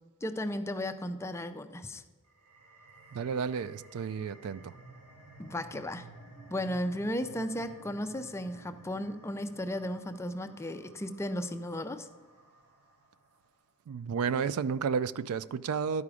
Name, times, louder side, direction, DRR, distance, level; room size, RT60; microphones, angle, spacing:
voice 1, 0.2-2.0 5.4-6.1 6.5-12.1, left 1 dB, 10° left, 0.4 m, -35 dB
sound 1, 2.2-13.4, right 2 dB, 90° right, 2.8 m, -54 dB
voice 2, 3.1-4.8 13.9-16.0, right 6 dB, 70° right, 0.3 m, -32 dB
12.0 x 4.9 x 4.9 m
head